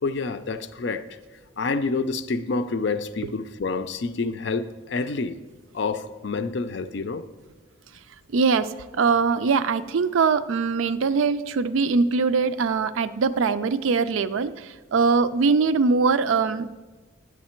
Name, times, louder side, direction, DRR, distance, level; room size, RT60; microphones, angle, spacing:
voice 1, 0.0-1.1 1.6-5.4 5.7-7.2, left 4 dB, 55° left, 11 dB, 0.4 m, -28 dB
voice 2, 8.3-8.7 8.9-16.7, right 4 dB, 75° right, 13 dB, 0.4 m, -22 dB
9.7 x 7.3 x 4.4 m, 1.2 s
head